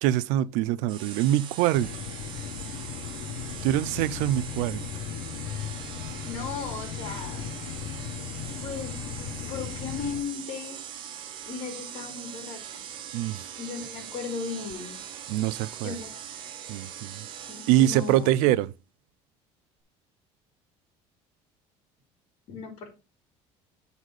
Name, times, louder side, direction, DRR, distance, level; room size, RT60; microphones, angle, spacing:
voice 1, 0.0-1.9 3.6-4.8 13.1-13.4 15.3-15.9 16.7-17.2 17.7-18.7, right 13 dB, 90° right, 0.4 m, -24 dB
sound 1, 0.9-18.5, right 9 dB, 45° right, 1.3 m, -41 dB
sound 2, 1.7-10.2, left 8 dB, 85° left, 1.2 m, -37 dB
voice 2, 6.2-7.5 8.6-10.8 11.5-12.9 13.6-15.0 15.8-16.2 17.5-18.6 22.5-22.9, left 5 dB, 60° left, 2.7 m, -37 dB
9.0 x 4.1 x 4.8 m
cardioid pair, 160°, 12 cm